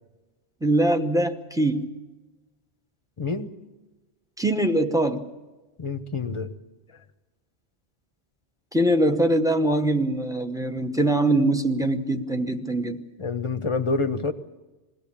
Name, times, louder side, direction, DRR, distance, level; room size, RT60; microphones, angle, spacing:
voice 1, 0.6-1.9 4.4-5.2 8.7-13.0, right 1 dB, 5° right, 6 dB, 0.8 m, -22 dB
voice 2, 3.2-3.5 5.8-6.5 13.2-14.3, left 4 dB, 30° left, 9 dB, 0.9 m, -27 dB
21.5 x 15.5 x 8.6 m, 1.2 s
omnidirectional pair, 1.1 m